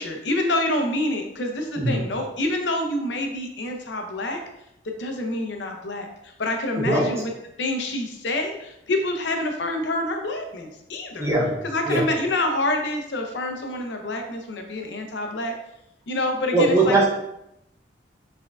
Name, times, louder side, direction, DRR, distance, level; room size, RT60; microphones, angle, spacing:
voice 1, 0.0-4.4 4.8-7.3 7.6-11.3 11.6-15.5 16.1-17.0, left 1 dB, 80° left, 4 dB, 0.6 m, -27 dB
voice 2, 1.8-2.1 6.8-7.1 11.2-12.1 16.5-17.1, right 2 dB, 15° right, -2 dB, 0.6 m, -21 dB
4.6 x 3.5 x 2.3 m, 0.82 s
head